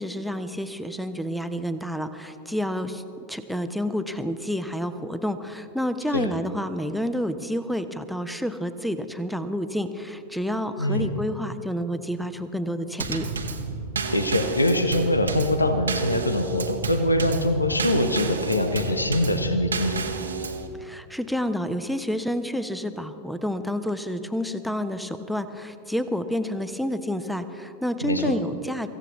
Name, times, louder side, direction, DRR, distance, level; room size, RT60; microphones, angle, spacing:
voice 1, 0.0-3.0 3.3-13.3 20.8-28.9, equal, ahead, 11 dB, 0.8 m, -29 dB
voice 2, 10.8-11.1 14.1-20.0 28.0-28.3, left 1 dB, 80° left, 8 dB, 0.9 m, -23 dB
Drum kit / Snare drum / Bass drum, 13.0-20.7, right 3 dB, 75° right, 1.1 m, -31 dB
24.5 x 15.5 x 3.1 m, 2.8 s
figure-of-eight pair, 90°, 0 cm